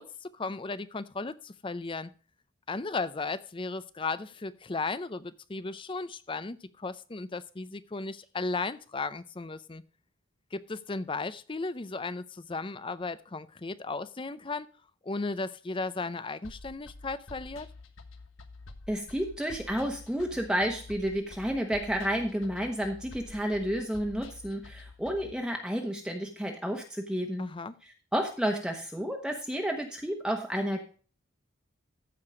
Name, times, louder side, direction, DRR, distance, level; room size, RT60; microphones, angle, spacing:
voice 1, 0.0-2.1 2.7-9.8 10.5-14.7 15.0-17.7 27.4-27.7, left 3 dB, 25° left, 0.5 m, -35 dB
sound 1, 16.4-25.3, left 2 dB, 80° left, 1.3 m, -48 dB
voice 2, 18.9-27.5 28.1-30.8, equal, 5° right, 1.1 m, -31 dB
14.5 x 4.9 x 5.0 m
head